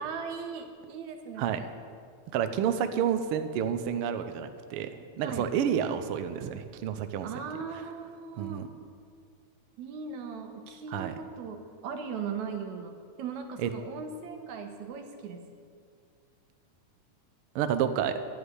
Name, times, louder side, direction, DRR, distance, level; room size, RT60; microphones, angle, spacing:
voice 1, 0.0-1.7 5.2-5.5 7.2-8.7 9.8-15.4, right 6 dB, 75° right, 5 dB, 2.4 m, -38 dB
voice 2, 2.3-7.3 8.4-8.7 10.9-11.1 13.6-13.7 17.5-18.2, right 8 dB, 90° right, 9 dB, 1.2 m, -29 dB
12.0 x 8.1 x 9.8 m, 2.2 s
omnidirectional pair, 3.5 m